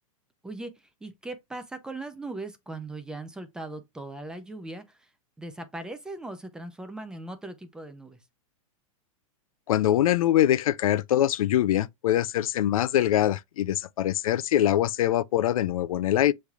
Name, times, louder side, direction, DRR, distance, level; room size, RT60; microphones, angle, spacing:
voice 1, 0.4-5.1 5.4-8.2, right 2 dB, 5° right, 0.4 m, -39 dB
voice 2, 9.7-16.3, left 12 dB, 85° left, 0.4 m, -23 dB
6.8 x 3.2 x 2.3 m
supercardioid pair, 155°, 18 cm